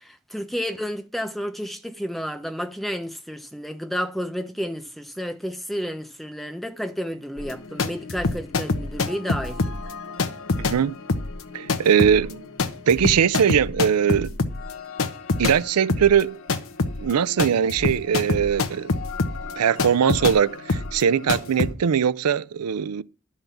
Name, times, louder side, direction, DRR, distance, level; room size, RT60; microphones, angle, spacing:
voice 1, 0.0-9.6, equal, ahead, 0.8 m, -31 dB
sound 1, 7.4-15.6 15.9-21.7, left 3 dB, 60° left, 1.0 m, -26 dB
voice 2, 10.6-10.9 11.5-12.5 12.9-14.3 15.4-16.4 17.0-18.9 19.6-23.0, right 8 dB, 90° right, 0.5 m, -21 dB
12.0 x 5.7 x 7.0 m
head